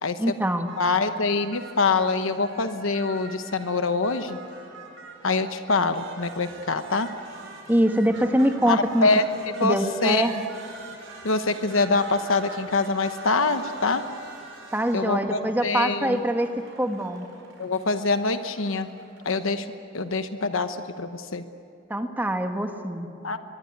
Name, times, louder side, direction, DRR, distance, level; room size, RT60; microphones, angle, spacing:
voice 1, 0.2-0.7 7.7-9.1 9.6-10.3 14.7-16.5 16.8-17.3 21.9-23.1, right 1 dB, 10° right, 5 dB, 1.5 m, -23 dB
sound 1, 0.7-19.4, right 3 dB, 70° right, 4.9 m, -45 dB
voice 2, 0.8-4.4 5.2-7.1 8.7-9.2 9.6-10.3 11.2-14.0 14.9-16.2 17.6-18.9 19.2-19.7 19.9-21.4 23.2-23.4, left 3 dB, 75° left, 9 dB, 1.0 m, -24 dB
23.5 x 23.0 x 9.4 m, 2.5 s
head